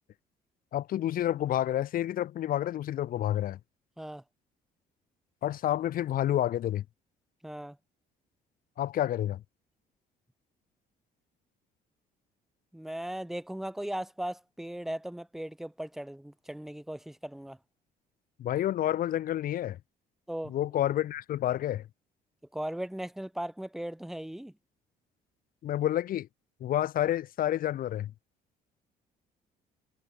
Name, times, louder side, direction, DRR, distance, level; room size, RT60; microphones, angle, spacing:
voice 1, 0.7-3.6 5.4-6.8 8.8-9.4 18.4-19.8 20.5-21.8 25.6-26.3 26.6-28.1, left 12 dB, 60° left, 1.0 m, -29 dB
voice 2, 7.4-7.8 12.7-17.6 20.3-20.6 22.5-24.5, right 1 dB, ahead, 0.6 m, -37 dB
cardioid pair, 110°, 17 cm